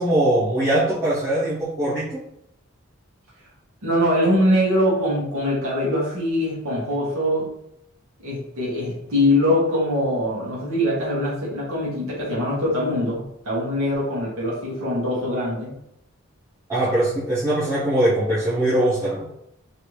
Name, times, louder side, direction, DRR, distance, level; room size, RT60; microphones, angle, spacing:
voice 1, 0.0-2.2 16.7-19.3, right 1 dB, 15° right, -13 dB, 1.0 m, -21 dB
voice 2, 3.8-7.5 8.2-15.7, left 1 dB, 75° right, -6 dB, 1.3 m, -22 dB
3.1 x 2.6 x 3.1 m, 0.79 s
head